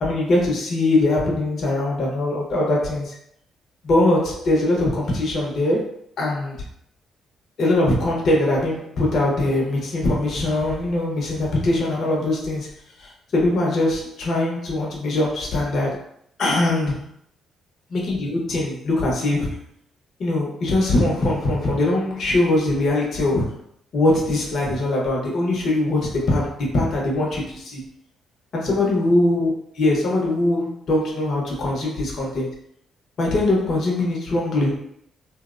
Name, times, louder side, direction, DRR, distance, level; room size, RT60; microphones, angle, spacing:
voice 1, 0.0-3.1 3.8-6.6 7.6-12.7 13.0-16.0 16.4-17.1 17.9-19.5 20.2-23.6 23.9-27.8 28.5-32.5 33.2-34.9, left 2 dB, 60° left, -3 dB, 0.7 m, -22 dB
2.7 x 2.0 x 2.4 m, 0.68 s
cardioid pair, 90°, 0 cm